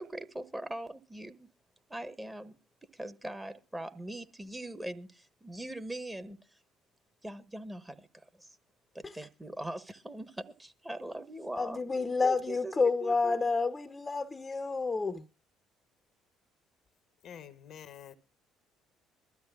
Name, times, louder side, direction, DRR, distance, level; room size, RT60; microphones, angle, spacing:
voice 1, 0.0-1.5 1.9-2.6 2.9-6.6 7.2-8.6 8.9-11.8 12.2-13.4, right 1 dB, 15° right, 1.2 m, -41 dB
voice 2, 11.6-15.2, left 4 dB, 25° left, 0.8 m, -29 dB
voice 3, 17.2-18.1, left 8 dB, 55° left, 0.9 m, -48 dB
22.5 x 13.0 x 2.4 m
hypercardioid pair, 55°, 0 cm